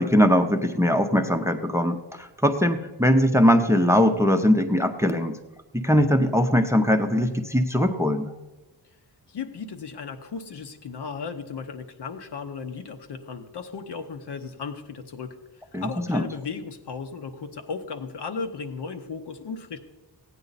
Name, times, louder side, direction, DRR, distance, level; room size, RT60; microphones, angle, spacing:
voice 1, 0.0-5.4 5.7-8.3 15.7-16.3, equal, 5° right, 6 dB, 0.6 m, -21 dB
voice 2, 9.3-15.3 15.8-19.8, left 5 dB, 70° left, 7 dB, 1.0 m, -35 dB
15.5 x 9.1 x 4.0 m, 1.1 s
wide cardioid pair, 125°, 43 cm